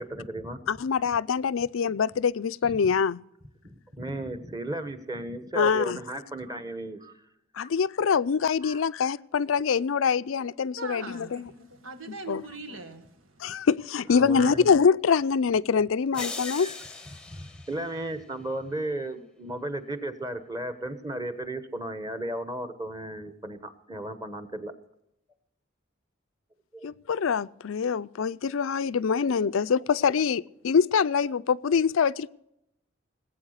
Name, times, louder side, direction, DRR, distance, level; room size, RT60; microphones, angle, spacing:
voice 1, 0.0-0.6 1.1-1.2 2.6-2.9 3.6-7.1 7.6-7.7 8.6-8.8 14.1-14.7 16.5-16.7 17.3-24.7 26.7-26.9 29.4-29.5 31.7-31.8, right 1 dB, 20° right, 1.2 m, -35 dB
voice 2, 0.7-3.2 5.5-6.0 7.6-11.4 12.3-12.4 13.4-16.7 26.8-32.3, left 6 dB, 85° left, 0.4 m, -24 dB
voice 3, 10.8-13.6, right 3 dB, 90° right, 1.7 m, -41 dB
sound 1, 16.1-18.5, left 3 dB, 5° left, 0.8 m, -40 dB
19.5 x 8.5 x 6.5 m
head